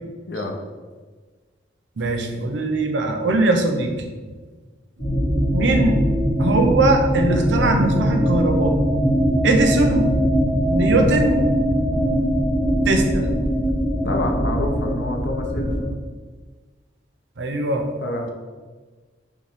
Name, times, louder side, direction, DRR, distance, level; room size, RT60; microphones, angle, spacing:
voice 1, 0.3-0.6 14.0-16.0 18.0-18.3, left 1 dB, 70° left, 3 dB, 0.6 m, -28 dB
voice 2, 2.0-4.0 5.5-6.0 6.4-8.8 9.4-10.1 10.7-11.4 12.8-13.3 17.4-17.9, right 2 dB, 80° right, 4 dB, 0.6 m, -20 dB
sound 1, 5.0-15.8, equal, 35° left, 1.4 m, -21 dB
5.1 x 2.2 x 3.4 m, 1.4 s
head